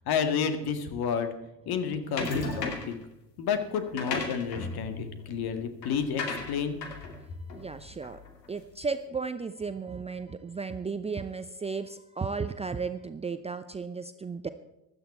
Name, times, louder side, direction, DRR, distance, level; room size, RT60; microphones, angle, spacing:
voice 1, 0.1-1.3 1.7-2.9 3.4-6.8, left 6 dB, 50° left, 8 dB, 2.1 m, -30 dB
sound 1, 2.2-3.0 3.8-8.5, left 3 dB, 80° left, 2.6 m, -36 dB
voice 2, 7.5-8.2 8.5-14.5, right 4 dB, 15° right, 10 dB, 0.6 m, -34 dB
16.0 x 12.0 x 4.4 m, 0.92 s
hypercardioid pair, 70°, 48 cm